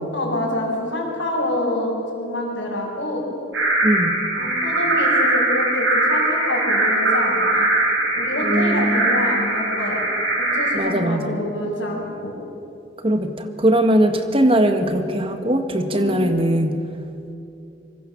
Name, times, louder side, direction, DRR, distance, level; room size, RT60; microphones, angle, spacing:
voice 1, 0.1-3.3 4.4-7.7 8.1-10.0 10.5-12.3 15.9-16.2, left 1 dB, 80° left, -7 dB, 5.6 m, -26 dB
sound 1, 3.5-10.7, right 2 dB, 80° right, 8.0 m, -21 dB
voice 2, 8.4-9.0 10.7-11.4 13.0-16.8, right 1 dB, 30° right, 6 dB, 1.8 m, -20 dB
25.5 x 23.5 x 7.4 m, 2.8 s
head